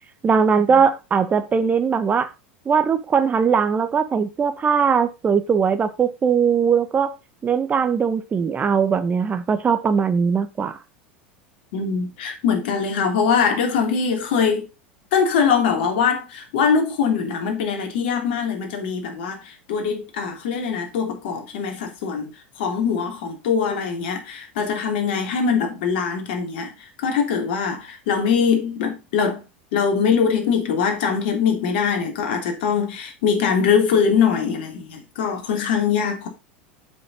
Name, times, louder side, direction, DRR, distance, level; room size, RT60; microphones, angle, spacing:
voice 1, 0.2-2.3 2.6-7.1 7.4-10.8, right 6 dB, 25° right, 1.4 m, -20 dB
voice 2, 11.7-14.7 15.1-22.3 22.6-26.7 27.0-29.4 29.7-36.3, left 6 dB, 65° left, 3.1 m, -22 dB
7.4 x 6.4 x 5.4 m
hypercardioid pair, 85°, 6 cm